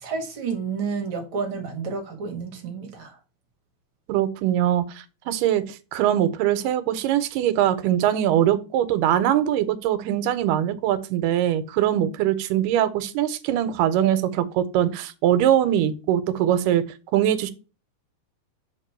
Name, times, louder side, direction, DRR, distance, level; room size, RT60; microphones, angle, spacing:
voice 1, 0.0-3.2, right 5 dB, 65° right, 1.3 m, -30 dB
voice 2, 4.1-16.8 17.1-17.5, right 11 dB, 90° right, 2.2 m, -22 dB
6.6 x 3.2 x 4.4 m
omnidirectional pair, 3.8 m